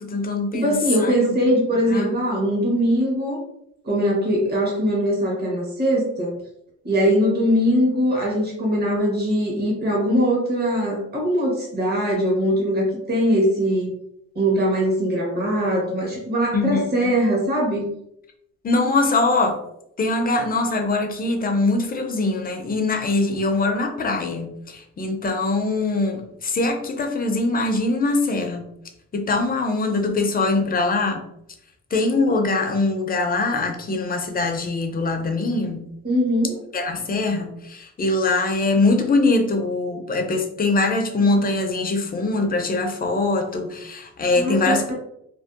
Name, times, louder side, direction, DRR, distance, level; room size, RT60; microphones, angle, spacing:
voice 1, 0.0-0.8 1.0-1.3 1.9-2.1 16.5-16.8 18.6-19.6 20.0-28.7 29.1-31.2 31.9-35.8 36.7-44.9, left 3 dB, 30° left, 4 dB, 0.5 m, -22 dB
voice 2, 0.5-3.4 3.8-6.3 6.8-13.9 14.3-17.8 36.0-36.6 44.4-44.9, equal, 35° right, -3 dB, 1.0 m, -21 dB
2.6 x 2.2 x 2.4 m, 0.77 s
cardioid pair, 90°, 30 cm